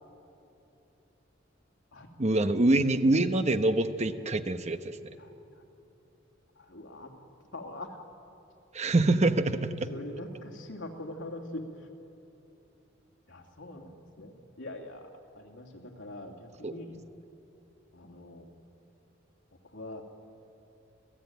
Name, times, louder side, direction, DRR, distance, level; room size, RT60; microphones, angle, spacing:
voice 1, 2.2-5.0 8.7-9.9 16.6-16.8, right 2 dB, 35° right, 9 dB, 1.0 m, -25 dB
voice 2, 5.2-5.6 6.6-7.1 7.5-8.1 9.9-11.9 13.3-17.0 17.9-18.5 19.6-20.0, left 1 dB, 75° left, 1 dB, 2.7 m, -43 dB
28.0 x 16.0 x 9.3 m, 2.9 s
head